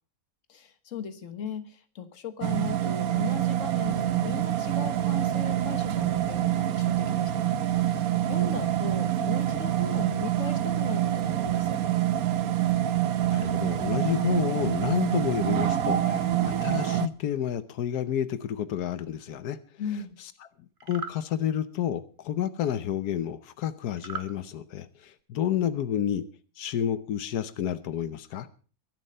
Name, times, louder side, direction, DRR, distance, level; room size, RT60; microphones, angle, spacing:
voice 1, 0.5-11.8 19.8-20.2, left 6 dB, 55° left, 10 dB, 1.7 m, -38 dB
sound 1, 2.4-17.1, right 12 dB, 70° right, 1.3 m, -26 dB
voice 2, 13.3-19.6 20.8-26.3 26.6-28.5, left 10 dB, 90° left, 13 dB, 1.4 m, -30 dB
sound 2, 20.8-21.2 24.0-24.3, right 5 dB, 40° right, 1.3 m, -37 dB
22.5 x 7.7 x 5.4 m, 0.40 s
omnidirectional pair, 1.6 m